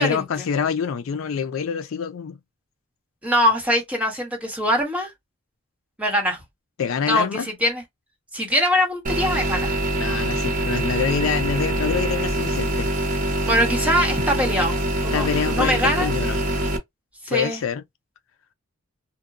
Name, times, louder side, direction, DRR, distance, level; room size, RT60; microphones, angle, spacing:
voice 1, 0.0-2.4 6.8-7.5 10.0-12.9 15.1-16.4 17.3-17.8, left 6 dB, 70° left, 0.4 m, -26 dB
voice 2, 3.2-5.1 6.0-6.4 7.1-7.8 8.3-9.7 13.5-16.1 17.2-17.6, equal, 5° right, 1.1 m, -22 dB
sound 1, 9.0-16.8, right 1 dB, 40° right, 0.8 m, -24 dB
2.9 x 2.1 x 2.4 m
head